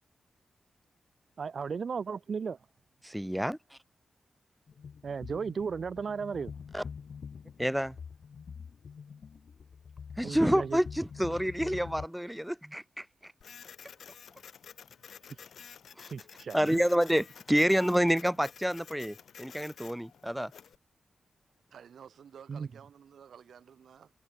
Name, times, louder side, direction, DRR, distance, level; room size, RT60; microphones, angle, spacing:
voice 1, 1.4-2.6 5.0-6.5 10.2-10.8 15.3-15.5 16.1-16.8 22.5-22.7, right 5 dB, 50° right, 1.1 m, -35 dB
voice 2, 3.0-3.6 6.7-6.8 7.6-8.0 10.2-13.3 16.0-16.1 16.5-20.5, equal, 5° right, 1.9 m, -28 dB
sound 1, 4.7-12.1, left 6 dB, 55° left, 3.4 m, -46 dB
Printer, 13.4-20.8, left 7 dB, 75° left, 5.0 m, -51 dB
voice 3, 21.7-24.1, right 8 dB, 80° right, 7.5 m, -52 dB
wide cardioid pair, 150°, 0 cm